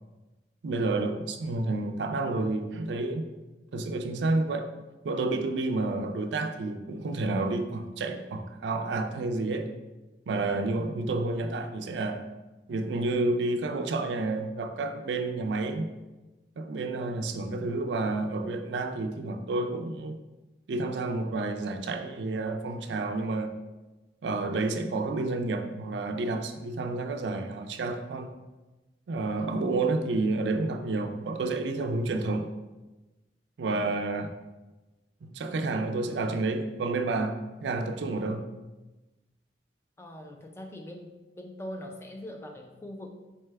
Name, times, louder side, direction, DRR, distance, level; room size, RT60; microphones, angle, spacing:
voice 1, 0.6-3.3 3.7-4.7 5.0-9.7 10.3-12.2 12.7-15.9 16.6-20.2 20.7-23.5 24.2-28.3 29.1-32.6 33.6-34.4 35.2-38.5, right 2 dB, 80° right, 6 dB, 0.4 m, -30 dB
voice 2, 40.0-43.1, left 1 dB, 15° left, 3 dB, 0.3 m, -42 dB
4.1 x 3.3 x 3.3 m, 1.1 s
head